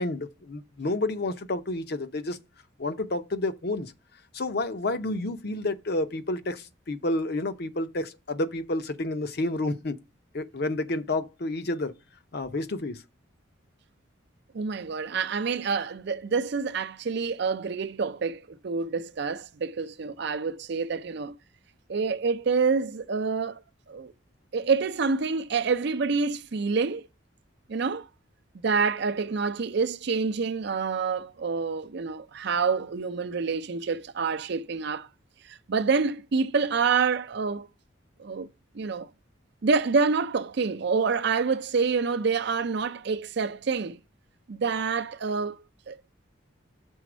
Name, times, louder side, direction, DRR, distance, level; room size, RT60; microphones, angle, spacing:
voice 1, 0.0-2.4 2.8-3.9 4.3-10.0 10.3-11.9 12.3-13.0, left 2 dB, 55° left, 0.7 m, -30 dB
voice 2, 14.5-21.4 21.9-23.6 23.9-24.1 24.5-27.0 27.7-28.1 28.6-35.1 35.5-37.7 38.2-38.5 38.7-39.1 39.6-44.0 44.5-45.6 45.9-46.0, right 5 dB, 60° right, 0.5 m, -27 dB
6.3 x 4.2 x 6.0 m
head